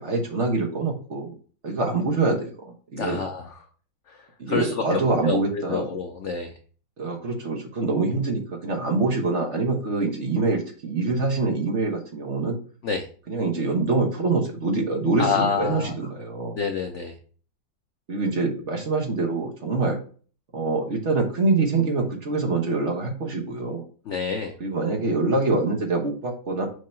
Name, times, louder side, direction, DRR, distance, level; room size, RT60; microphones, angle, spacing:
voice 1, 0.0-1.4 1.6-3.2 4.4-5.9 7.0-12.6 13.3-16.6 18.1-20.0 20.5-23.9 24.6-26.7, right 3 dB, 45° right, 2 dB, 1.2 m, -25 dB
voice 2, 3.0-3.5 4.1-5.4 5.7-6.5 12.8-13.1 15.2-15.9 16.5-17.1 24.1-24.6, left 5 dB, 80° left, 5 dB, 0.6 m, -28 dB
6.3 x 2.8 x 5.6 m, 0.42 s
omnidirectional pair, 2.0 m